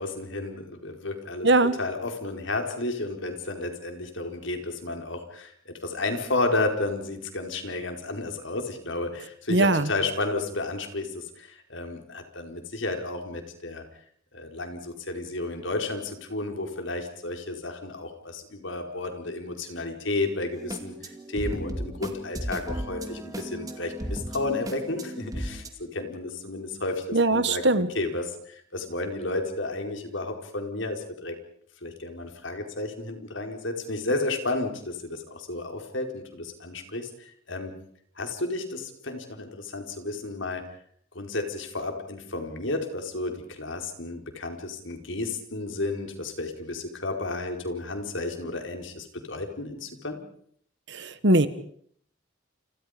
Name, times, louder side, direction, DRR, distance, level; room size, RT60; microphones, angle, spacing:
voice 1, 0.0-13.8 14.3-31.4 31.8-37.7 38.2-40.6 41.1-50.2, left 2 dB, 70° left, 4 dB, 4.6 m, -32 dB
voice 2, 1.4-1.8 9.5-9.9 27.1-27.9 50.9-51.5, right 2 dB, 60° right, 13 dB, 1.5 m, -21 dB
sound 1, 20.5-25.7, equal, 15° right, 2.3 m, -35 dB
29.5 x 26.0 x 5.2 m, 0.62 s
head